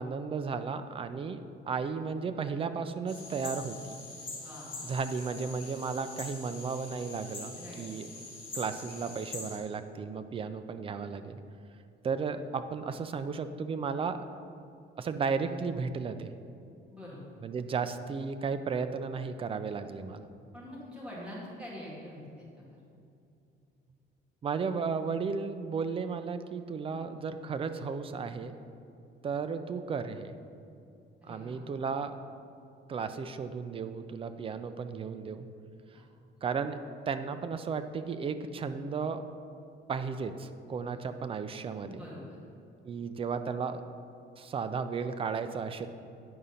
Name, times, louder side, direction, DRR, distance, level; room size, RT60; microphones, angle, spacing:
voice 1, 0.0-4.0 4.8-8.1 8.5-11.4 12.0-14.2 15.0-16.3 17.4-20.3 24.4-28.6 29.2-30.4 31.2-32.1 32.9-35.5 36.4-36.8 37.1-39.2 39.9-42.0 42.8-43.8 44.4-45.9, right 5 dB, 30° right, 10 dB, 0.4 m, -34 dB
sound 1, 3.1-9.6, left 3 dB, 50° left, 2.2 m, -44 dB
voice 2, 4.4-4.8 7.6-7.9 16.9-17.2 20.5-22.8 31.2-31.6 35.9-36.0 41.8-42.4, left 1 dB, 5° right, -7 dB, 2.2 m, -45 dB
9.5 x 5.0 x 5.6 m, 2.6 s
cardioid pair, 160°, 20 cm